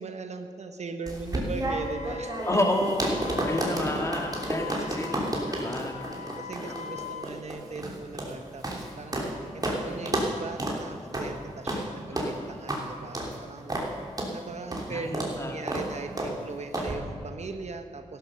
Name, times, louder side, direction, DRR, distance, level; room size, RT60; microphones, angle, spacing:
voice 1, 0.0-2.8 3.5-4.0 5.8-5.9 6.2-13.7 14.3-18.2, right 4 dB, 55° right, 7 dB, 1.0 m, -39 dB
sound 1, 1.1-9.3 9.6-9.8 10.1-10.3 10.6-10.8 11.1-11.3 11.7-11.8 12.2-12.3 12.7-12.8 13.1-13.3 13.7-13.9 14.2-14.3 14.7-14.9 15.1-15.3 15.7-15.9 16.2-16.3 16.7-16.9, right 1 dB, 30° right, 3.1 m, -31 dB
Wind instrument woodwind instrument, 1.6-7.3, left 7 dB, 65° left, 0.9 m, -41 dB
voice 2, 2.5-6.0 12.1-12.6 14.9-15.6, left 1 dB, 20° left, 1 dB, 2.6 m, -30 dB
14.0 x 12.0 x 6.5 m, 2.2 s
cardioid pair, 65°, 14 cm